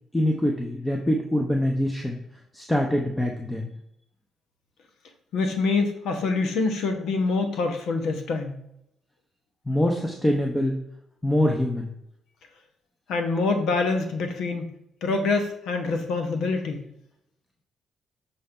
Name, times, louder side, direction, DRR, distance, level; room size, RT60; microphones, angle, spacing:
voice 1, 0.1-2.2 2.5-3.7 9.7-10.8 11.2-11.9, left 1 dB, 10° left, 1 dB, 0.8 m, -24 dB
voice 2, 5.3-8.5 13.1-14.7 15.0-16.8, left 3 dB, 80° left, 5 dB, 1.0 m, -25 dB
6.8 x 4.2 x 3.7 m, 0.77 s
cardioid pair, 90°, 0 cm